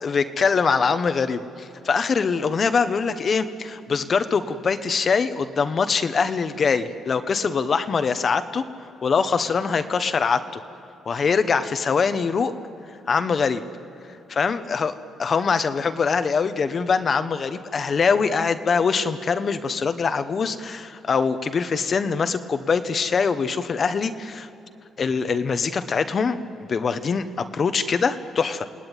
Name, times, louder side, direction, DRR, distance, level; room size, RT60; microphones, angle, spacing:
voice 1, 0.0-8.6 9.0-10.6 11.0-12.5 13.1-13.6 14.3-14.9 15.2-24.5 25.0-26.4 26.7-28.7, left 5 dB, 45° left, 10 dB, 1.2 m, -23 dB
28.5 x 19.0 x 9.2 m, 2.6 s
cardioid pair, 90°, 0 cm